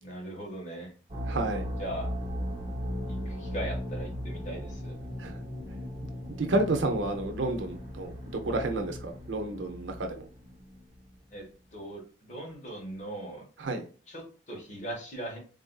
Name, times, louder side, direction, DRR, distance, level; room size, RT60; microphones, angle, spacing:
voice 1, 0.0-0.9 1.8-2.1 3.1-4.9 11.3-11.4 11.7-13.4 14.1-15.4, right 1 dB, 40° left, -2 dB, 1.2 m, -39 dB
sound 1, 1.1-10.9, equal, 30° right, 0.8 m, -37 dB
voice 2, 1.3-1.7 5.2-5.4 6.3-8.1 8.4-10.3 13.6-13.8, right 2 dB, 90° right, 5 dB, 0.6 m, -30 dB
3.7 x 2.5 x 2.2 m, 0.38 s
head